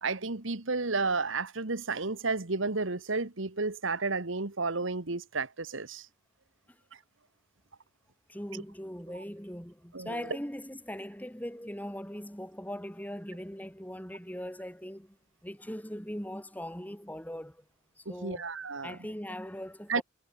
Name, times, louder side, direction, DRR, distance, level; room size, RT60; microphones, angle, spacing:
voice 1, 0.0-6.1 9.9-10.3 18.0-19.0 19.9-20.0, right 3 dB, 70° right, 1.6 m, -32 dB
voice 2, 8.3-15.2 15.4-17.6 18.0-18.5 18.8-20.0, equal, 10° left, 5.6 m, -40 dB
head